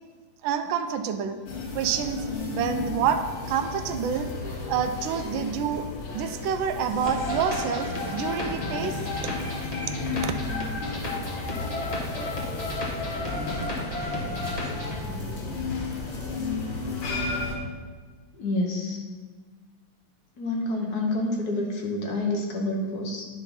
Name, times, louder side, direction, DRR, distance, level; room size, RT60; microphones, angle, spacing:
voice 1, 0.4-1.4 1.7-2.2 2.5-3.2 3.5-4.3 4.7-5.9 6.1-9.0 10.0-10.1, right 7 dB, 75° right, 8 dB, 1.3 m, -27 dB
sound 1, 1.5-17.6, left 3 dB, 90° left, 2.0 m, -34 dB
sound 2, 7.0-15.0, left 2 dB, 25° left, 0.9 m, -32 dB
voice 2, 18.3-19.0 20.4-23.3, left 2 dB, 55° left, 1 dB, 1.2 m, -28 dB
9.2 x 3.7 x 5.4 m, 1.4 s
omnidirectional pair, 2.4 m